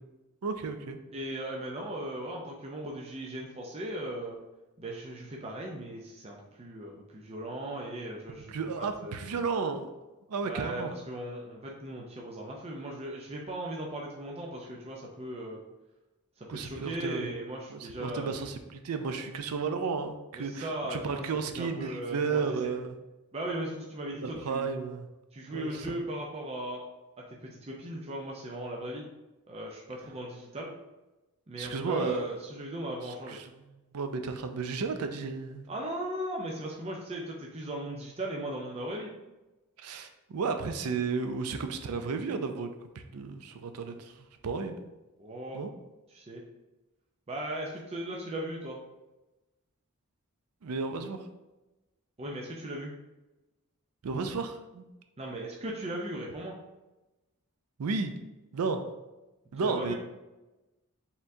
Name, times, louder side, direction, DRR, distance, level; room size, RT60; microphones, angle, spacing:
voice 1, 0.4-1.0 8.5-9.9 10.3-10.9 16.5-17.3 17.7-23.0 24.2-25.1 25.5-26.0 31.6-32.3 33.0-33.5 33.9-35.7 39.8-42.7 43.0-44.8 45.5-45.7 50.6-51.3 54.0-54.8 57.8-58.1 58.5-58.8 59.5-60.0, right 4 dB, 75° right, 7 dB, 0.5 m, -33 dB
voice 2, 1.1-4.4 4.8-9.2 10.4-15.6 16.4-18.3 19.1-19.2 20.3-21.2 21.5-22.7 23.3-24.7 25.3-26.8 27.4-29.0 29.5-30.7 31.5-33.4 35.7-39.1 45.2-45.6 46.1-46.4 47.3-48.8 52.2-52.9 55.2-56.5 59.6-60.0, right 1 dB, 30° right, -1 dB, 0.5 m, -37 dB
4.4 x 3.6 x 2.7 m, 1.1 s
head